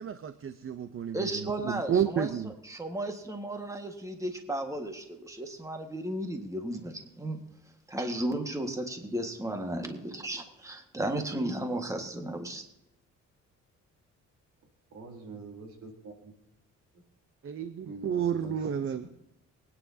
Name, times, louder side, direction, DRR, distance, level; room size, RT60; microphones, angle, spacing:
voice 1, 0.0-2.5 17.4-19.0, right 8 dB, 45° right, 11 dB, 0.8 m, -31 dB
voice 2, 1.1-2.3 2.7-7.4 7.9-12.6, right 1 dB, 10° right, 5 dB, 1.7 m, -34 dB
voice 3, 14.9-16.3 17.8-19.1, right 3 dB, 70° right, 1 dB, 4.0 m, -45 dB
24.0 x 9.7 x 2.8 m, 0.85 s
cardioid pair, 90°, 30 cm